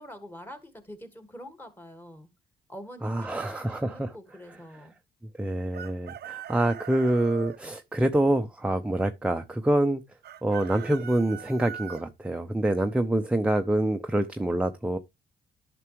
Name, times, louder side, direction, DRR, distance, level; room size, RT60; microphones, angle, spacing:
voice 1, 0.0-2.3 2.7-4.9, equal, 10° left, 1.7 m, -45 dB
voice 2, 3.0-4.1 5.4-10.0 10.4-15.0, right 1 dB, 5° right, 0.6 m, -26 dB
Chicken rooster, 5.7-7.6 10.2-12.0, right 10 dB, 55° right, 0.6 m, -41 dB
11.0 x 5.9 x 3.0 m
cardioid pair, 90°, 20 cm